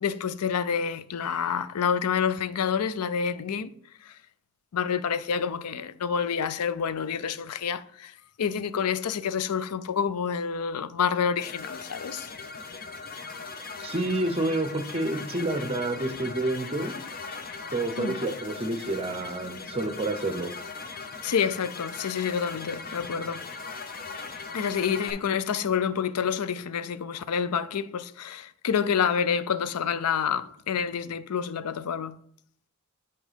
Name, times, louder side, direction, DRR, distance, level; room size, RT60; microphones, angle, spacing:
voice 1, 0.0-3.7 4.0-4.2 4.7-12.3 18.0-18.2 21.2-23.5 24.5-32.2, left 7 dB, 85° left, 0.5 m, -28 dB
sound 1, 11.4-25.1, left 4 dB, 40° left, 0.7 m, -39 dB
voice 2, 13.8-17.0 17.7-20.5, right 2 dB, 25° right, 0.7 m, -29 dB
6.3 x 4.5 x 5.1 m
head